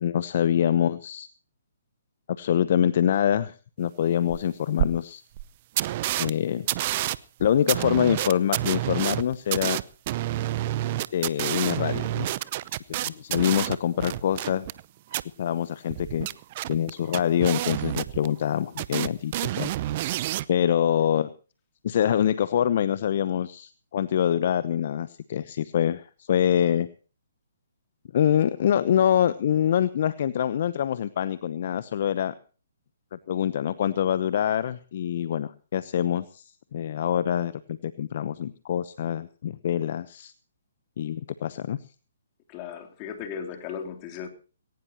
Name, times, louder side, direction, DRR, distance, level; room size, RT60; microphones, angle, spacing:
voice 1, 0.0-1.3 2.4-5.2 6.2-6.6 7.4-9.8 11.1-12.3 13.0-14.7 15.4-16.3 16.7-19.7 20.5-21.3 21.8-26.9 28.1-32.3 33.1-40.3 41.0-41.8, left 9 dB, 50° left, 16 dB, 0.9 m, -25 dB
sound 1, 4.3-4.4 4.8-4.9 5.4-5.5 5.8-6.3 6.7-14.8 15.1-15.2 15.9-18.5 18.8-20.5, right 15 dB, 40° right, 0.7 m, -28 dB
voice 2, 42.5-44.3, left 7 dB, 30° left, 5 dB, 3.5 m, -36 dB
20.5 x 18.5 x 3.0 m, 0.38 s
hypercardioid pair, 140°, 0 cm